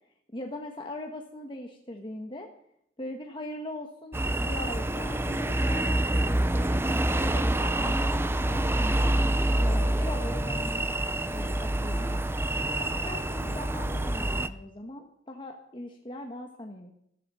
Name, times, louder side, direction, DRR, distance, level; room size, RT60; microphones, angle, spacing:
voice 1, 0.3-2.5 3.0-6.7 7.0-8.2 8.5-9.1 9.6-10.8 11.3-12.2 12.8-16.9, left 1 dB, 25° left, 2 dB, 1.4 m, -40 dB
sound 1, 4.1-14.5, right 1 dB, 15° right, 0.6 m, -27 dB
15.0 x 14.0 x 5.6 m, 0.72 s
head